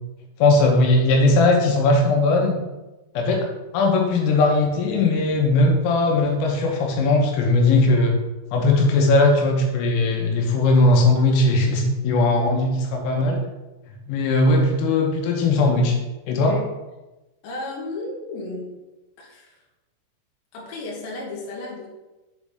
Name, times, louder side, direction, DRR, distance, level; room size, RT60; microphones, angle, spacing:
voice 1, 0.4-2.6 3.2-3.5 3.7-8.2 8.5-13.4 14.1-16.0 16.3-16.6, left 2 dB, 85° left, 1 dB, 3.4 m, -19 dB
voice 2, 17.4-18.7 19.2-19.6 20.5-21.9, left 2 dB, 65° left, -3 dB, 2.4 m, -34 dB
7.6 x 4.2 x 3.7 m, 1.1 s
omnidirectional pair, 5.7 m